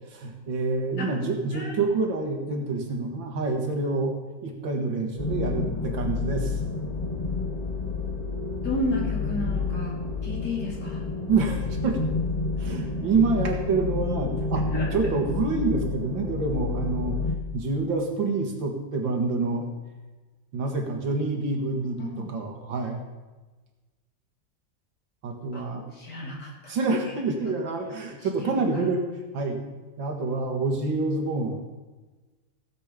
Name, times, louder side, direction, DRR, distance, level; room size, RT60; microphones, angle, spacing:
voice 1, 0.1-4.1 4.4-6.5 11.3-12.0 12.6-14.6 14.9-17.2 17.5-19.7 20.5-23.0 25.2-25.9 26.7-29.1 29.3-31.6, right 3 dB, 85° right, 2 dB, 2.4 m, -27 dB
sound 1, 5.2-17.3, left 3 dB, 25° left, 0.9 m, -29 dB
voice 2, 8.6-10.0 10.2-11.0 14.7-14.9 22.0-22.3 25.5-25.6 25.9-26.7 27.0-27.1 27.5-27.6 28.4-28.9, left 1 dB, 60° left, -3 dB, 3.8 m, -32 dB
17.0 x 7.6 x 5.1 m, 1.2 s
omnidirectional pair, 2.0 m